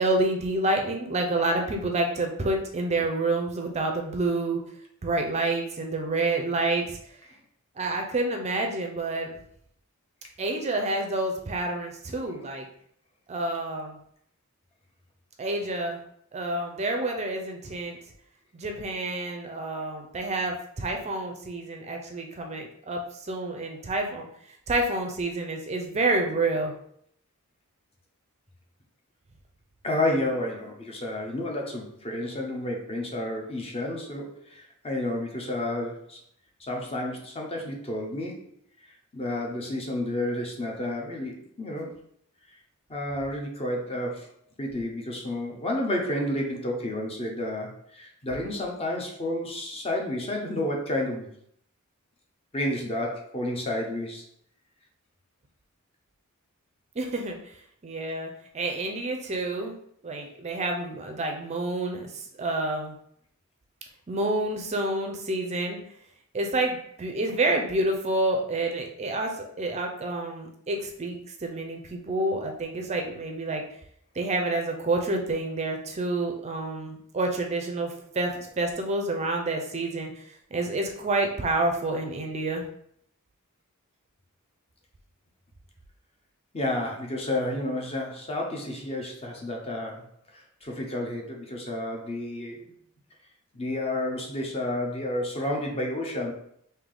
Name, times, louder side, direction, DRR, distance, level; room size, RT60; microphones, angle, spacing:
voice 1, 0.0-4.6 5.0-7.0 7.8-9.3 10.4-12.7 13.3-14.0 15.4-16.0 16.3-18.0 18.5-23.0 23.3-24.3 24.7-26.7 57.0-57.4 57.8-59.7 60.0-62.9 64.1-65.8 66.3-73.6 74.2-80.2 80.5-82.6, right 2 dB, 30° right, 3 dB, 0.5 m, -28 dB
voice 2, 29.8-36.2 36.6-38.5 39.1-42.0 42.9-44.3 44.6-51.3 52.5-54.2 86.5-90.0 90.3-92.7 93.5-96.3, left 1 dB, 25° left, 1 dB, 0.7 m, -31 dB
3.4 x 2.7 x 3.8 m, 0.69 s
head